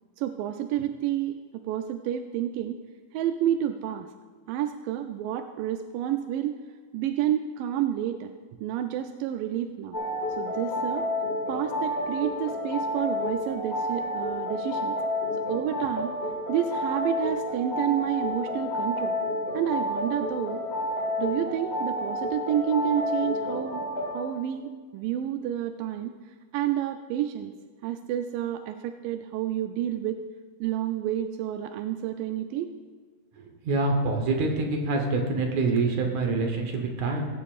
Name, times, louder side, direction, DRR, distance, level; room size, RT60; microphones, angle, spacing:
voice 1, 0.2-2.8 3.1-4.1 4.5-6.6 6.9-8.3 8.6-10.0 10.4-11.1 11.5-15.0 15.5-16.1 16.5-19.2 19.5-20.6 21.2-23.8 24.1-27.5 27.8-30.2 30.6-32.7, right 11 dB, 90° right, 7 dB, 2.2 m, -29 dB
sound 1, 9.9-24.2, left 1 dB, 35° left, 1.0 m, -30 dB
voice 2, 33.6-37.3, right 3 dB, 65° right, 3 dB, 2.3 m, -26 dB
20.0 x 9.4 x 2.5 m, 1.5 s
omnidirectional pair, 3.8 m